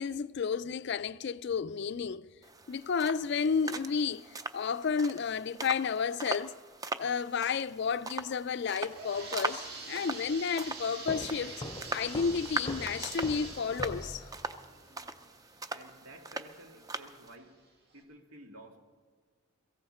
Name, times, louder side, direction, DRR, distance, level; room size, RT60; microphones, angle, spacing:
voice 1, 0.0-2.3 2.7-6.6 7.0-11.6 11.9-14.2, left 6 dB, 50° left, 0.4 m, -32 dB
sound 1, 2.4-17.3, right 3 dB, 15° right, 0.5 m, -41 dB
sound 2, 8.5-16.2 16.6-16.7 17.5-17.6 18.0-18.1, right 3 dB, 50° right, 2.8 m, -46 dB
sound 3, 11.1-14.8, left 1 dB, 15° left, 0.7 m, -43 dB
voice 2, 15.7-17.6 17.9-18.8, right 1 dB, 75° right, 1.9 m, -53 dB
22.5 x 15.0 x 4.3 m
head